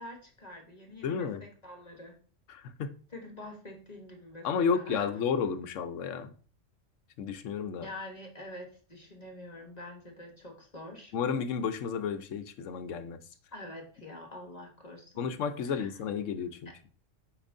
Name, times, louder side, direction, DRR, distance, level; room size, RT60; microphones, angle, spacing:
voice 1, 0.0-2.2 3.1-5.1 7.8-11.1 13.5-15.3 15.6-15.9 16.6-16.7, left 1 dB, 35° left, 1.1 m, -46 dB
voice 2, 1.0-1.4 2.5-2.9 4.4-6.3 7.2-7.9 11.1-13.2 15.2-16.7, left 6 dB, 75° left, 1.0 m, -32 dB
8.7 x 5.1 x 2.6 m
omnidirectional pair, 1.3 m